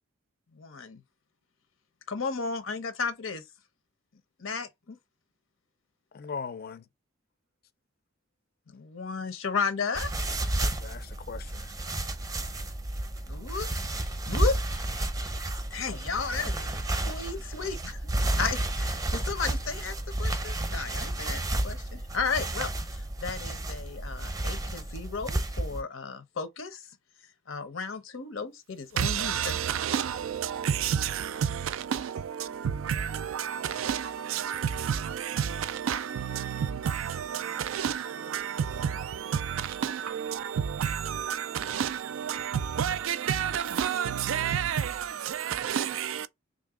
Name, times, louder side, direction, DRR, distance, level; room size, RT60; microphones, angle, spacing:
voice 1, 0.5-1.0 2.1-3.4 4.4-5.0 8.7-10.1 13.3-14.8 15.3-15.4 15.7-16.7 17.0-26.8 27.5-29.6, left 5 dB, 80° left, 0.8 m, -34 dB
voice 2, 6.1-6.8 10.3-11.8, left 5 dB, 50° left, 0.5 m, -40 dB
sound 1, 9.9-25.8, right 1 dB, 20° right, 0.6 m, -31 dB
voice 3, 29.0-46.3, right 8 dB, 80° right, 0.4 m, -30 dB
3.2 x 2.6 x 3.6 m
head